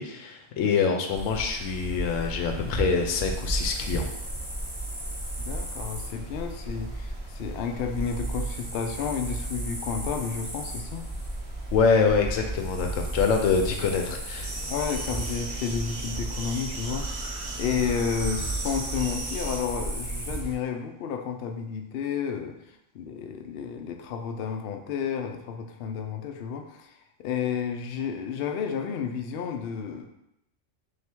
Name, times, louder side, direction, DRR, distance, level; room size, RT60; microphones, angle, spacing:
voice 1, 0.0-4.0 11.7-14.5, left 5 dB, 90° left, 4 dB, 1.0 m, -25 dB
sound 1, 1.1-20.6, right 2 dB, 20° right, 0.8 m, -34 dB
voice 2, 5.4-11.1 14.7-30.1, left 7 dB, 65° left, 4 dB, 0.6 m, -31 dB
sound 2, 14.4-19.6, right 3 dB, 50° right, 0.8 m, -37 dB
3.4 x 2.8 x 4.4 m, 0.82 s
omnidirectional pair, 1.3 m